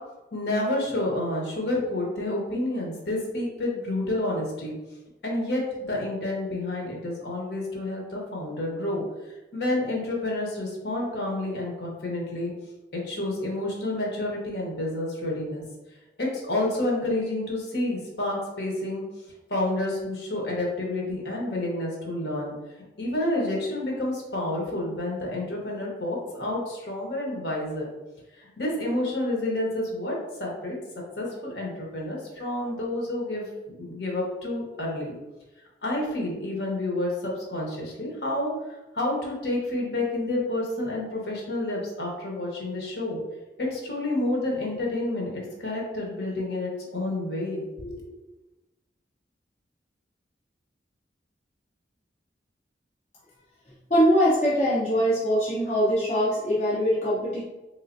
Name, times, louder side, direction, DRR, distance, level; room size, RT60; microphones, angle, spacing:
voice 1, 0.3-4.7 5.2-9.0 9.5-12.5 12.9-15.6 16.2-19.0 19.5-22.5 23.0-27.9 28.3-30.7 31.2-35.1 35.8-43.2 43.6-48.2, left 1 dB, 65° left, -2 dB, 1.1 m, -29 dB
voice 2, 53.9-57.4, equal, 40° left, -8 dB, 0.7 m, -22 dB
3.7 x 3.2 x 2.6 m, 1.1 s
head